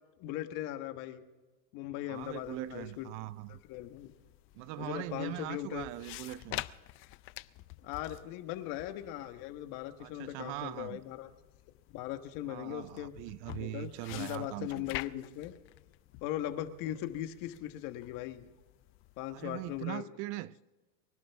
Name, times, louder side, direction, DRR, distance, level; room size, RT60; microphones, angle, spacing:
voice 1, 0.2-1.2 1.7-3.1 3.5-4.1 4.8-5.9 7.8-11.3 11.9-13.1 13.6-15.5 16.2-18.5 19.2-20.0, left 13 dB, 55° left, 1.4 m, -39 dB
sound 1, 2.1-19.8, left 18 dB, 35° left, 0.4 m, -49 dB
voice 2, 2.1-3.6 4.5-6.6 10.0-11.0 12.5-14.9 19.3-20.6, right 17 dB, 45° right, 0.4 m, -41 dB
23.5 x 11.5 x 3.5 m
supercardioid pair, 130°, 40 cm